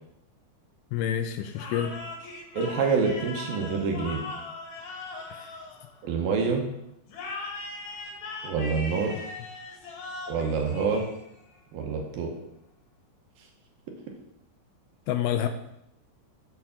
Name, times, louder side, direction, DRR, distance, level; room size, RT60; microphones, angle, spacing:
voice 1, 0.9-2.0 5.3-5.5 15.1-15.5, left 10 dB, 80° left, 8 dB, 2.4 m, -28 dB
sound 1, 1.5-6.3 7.1-11.5, left 3 dB, 60° left, 2.2 m, -40 dB
voice 2, 2.5-4.2 6.0-6.7 8.4-9.1 10.3-11.0 11.7-12.3, right 5 dB, 70° right, 2 dB, 2.5 m, -26 dB
7.7 x 4.6 x 7.0 m, 0.80 s
omnidirectional pair, 4.7 m